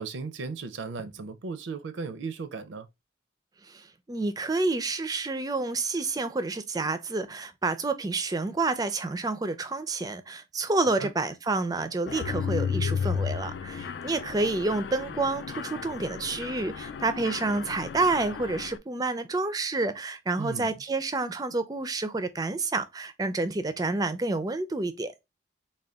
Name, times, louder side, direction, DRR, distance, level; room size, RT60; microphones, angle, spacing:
voice 1, 0.0-2.9 11.0-11.1 20.4-20.7, right 4 dB, 80° right, 0.5 m, -36 dB
voice 2, 3.7-25.1, right 3 dB, 20° right, 0.4 m, -29 dB
Mechanisms, 12.1-18.8, left 6 dB, 65° left, 0.3 m, -33 dB
3.7 x 2.2 x 3.3 m
head